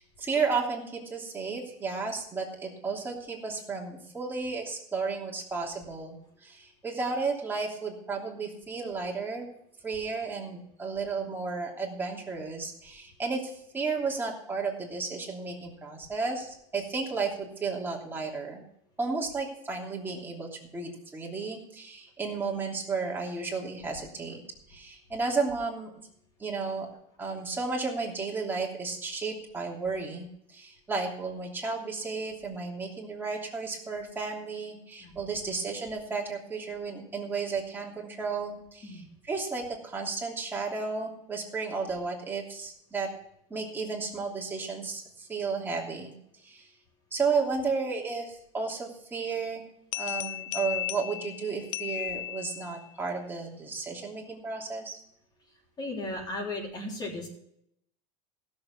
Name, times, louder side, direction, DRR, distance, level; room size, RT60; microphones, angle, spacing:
voice 1, 0.0-9.5 9.8-18.6 19.0-24.4 24.7-25.9 26.4-26.9 27.2-43.1 43.5-46.1 46.4-46.7 47.1-49.6 49.9-55.0, right 4 dB, 15° right, -2 dB, 3.0 m, -33 dB
sound 1, 49.9-52.9, left 15 dB, 70° left, 0.5 m, -35 dB
voice 2, 55.8-57.3, left 2 dB, 25° left, 0 dB, 3.5 m, -35 dB
15.5 x 7.1 x 5.9 m, 0.75 s
supercardioid pair, 135°, 16 cm